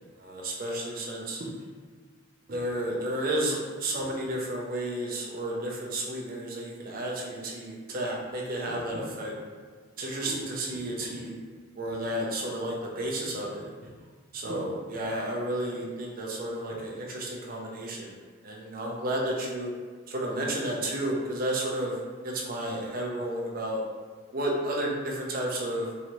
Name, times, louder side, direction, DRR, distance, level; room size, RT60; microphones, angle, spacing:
voice 1, 0.2-1.5 2.5-9.4 10.0-11.3 11.8-13.7 14.3-18.1 18.4-19.7 20.1-22.0 22.2-23.8 24.3-25.9, right 1 dB, 45° right, -2 dB, 0.5 m, -32 dB
3.0 x 2.6 x 2.9 m, 1.5 s
head